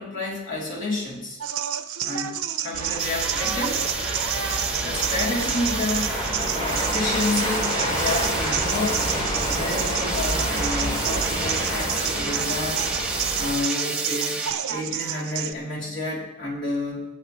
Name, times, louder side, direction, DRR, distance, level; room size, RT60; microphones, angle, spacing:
voice 1, 0.0-1.4 2.0-3.8 4.8-6.2 6.5-9.0 9.4-12.9 13.3-17.1, left 2 dB, 55° left, -4 dB, 3.3 m, -30 dB
sound 1, 1.4-15.5, right 10 dB, 70° right, 0.7 m, -30 dB
sound 2, 2.7-13.5, equal, 25° left, 3.0 m, -29 dB
sound 3, 3.0-14.5, right 3 dB, 5° right, 0.9 m, -31 dB
19.0 x 8.6 x 3.2 m, 0.92 s
head